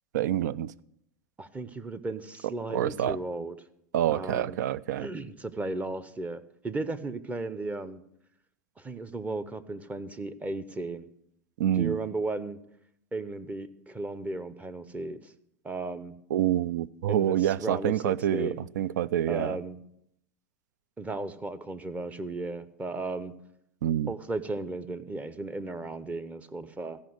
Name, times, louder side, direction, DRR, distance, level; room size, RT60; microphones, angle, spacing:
voice 1, 0.1-0.7 2.7-3.2 3.9-5.1 11.6-12.0 16.3-19.6 23.8-24.1, right 11 dB, 85° right, 0.4 m, -27 dB
voice 2, 1.4-3.6 4.1-4.6 5.0-8.0 8.8-11.1 11.8-12.6 13.1-15.3 15.6-16.1 17.1-18.6 19.3-19.8 21.0-23.3 24.1-27.0, right 2 dB, 15° right, 0.7 m, -35 dB
14.0 x 5.3 x 7.8 m
hypercardioid pair, 115°, 9 cm